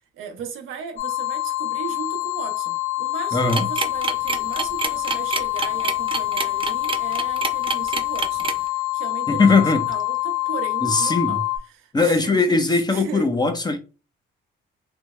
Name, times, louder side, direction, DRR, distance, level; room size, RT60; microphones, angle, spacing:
voice 1, 0.1-13.3, right 7 dB, 90° right, 0.8 m, -37 dB
sound 1, 1.0-11.6, left 19 dB, 85° left, 0.6 m, -26 dB
voice 2, 3.3-3.7 9.3-9.8 10.8-11.4 11.9-13.8, left 3 dB, 20° left, 0.6 m, -19 dB
sound 2, 3.5-8.7, right 5 dB, 25° right, 0.5 m, -26 dB
3.3 x 2.2 x 3.1 m
cardioid pair, 90°, 20 cm